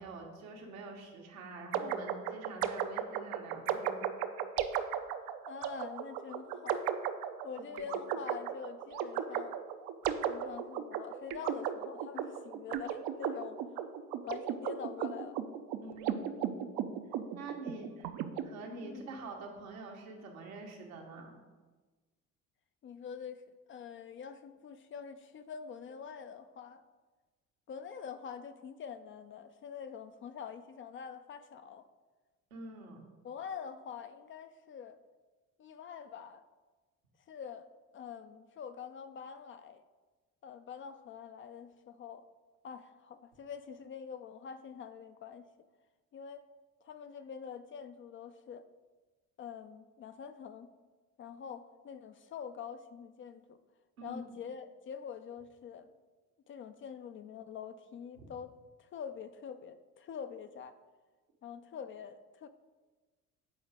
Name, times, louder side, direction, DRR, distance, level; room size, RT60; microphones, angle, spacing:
voice 1, 0.0-4.1 7.6-7.9 15.8-16.6 17.3-18.1 18.4-21.4 32.5-33.0 54.0-54.3, right 3 dB, 80° right, 1 dB, 1.2 m, -46 dB
sound 1, 1.7-18.4, right 9 dB, 55° right, 0.6 m, -36 dB
voice 2, 5.5-6.9 7.4-9.6 10.1-13.6 14.2-15.4 18.8-19.1 22.8-23.4 23.7-26.8 27.7-31.8 33.2-35.0 35.6-36.4 37.3-37.7 37.9-39.8 40.4-42.2 42.6-45.5 46.1-46.5 46.8-48.7 49.4-50.7 51.2-53.6 54.0-55.9 56.5-58.5 58.8-60.8 61.4-62.5, left 7 dB, 30° left, 10 dB, 0.4 m, -45 dB
7.6 x 4.6 x 3.5 m, 1.3 s
figure-of-eight pair, 55°, 41 cm